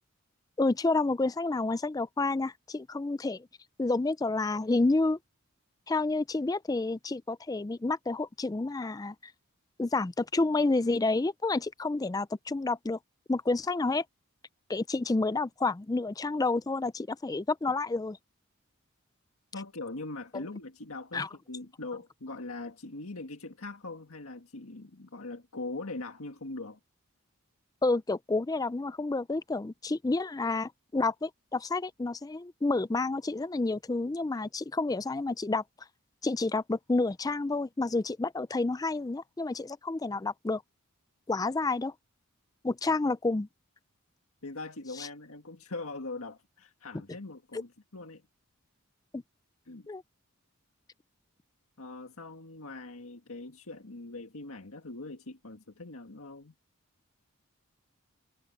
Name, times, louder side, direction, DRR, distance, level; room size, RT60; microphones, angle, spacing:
voice 1, 0.6-3.5 3.8-5.2 5.9-9.3 9.8-13.0 13.3-14.0 14.7-18.2 20.3-20.4 21.1-21.3 27.8-35.6 36.2-40.6 41.3-41.9 42.6-43.5 45.0-45.1 47.5-47.6 49.1-49.2 49.9-50.0, left 3 dB, 15° left, 0.3 m, -29 dB
voice 2, 19.5-26.8 44.4-48.2 49.7-49.9 51.8-56.5, left 2 dB, 75° left, 1.8 m, -41 dB
head